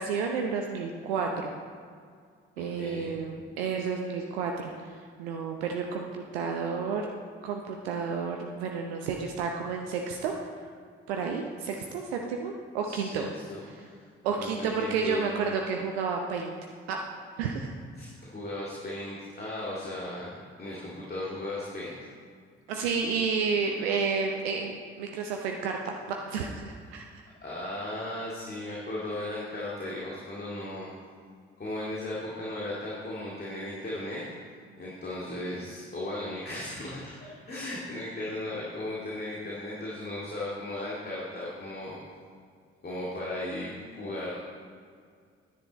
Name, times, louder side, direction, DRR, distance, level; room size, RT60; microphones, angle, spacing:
voice 1, 0.0-1.5 2.6-4.7 5.2-7.1 7.4-10.3 11.1-13.3 14.2-16.5 16.9-17.0 17.4-17.7 22.7-27.0, right 5 dB, 70° right, 2 dB, 0.7 m, -31 dB
voice 2, 2.6-3.1 12.8-13.2 13.5-14.0 14.4-15.5 18.0-20.3 20.6-21.9 27.4-30.9 31.6-34.2 34.8-37.1 37.5-42.0 42.8-44.4, left 1 dB, 30° left, -6 dB, 2.2 m, -36 dB
10.0 x 9.5 x 4.1 m, 2.1 s
figure-of-eight pair, 45°, 31 cm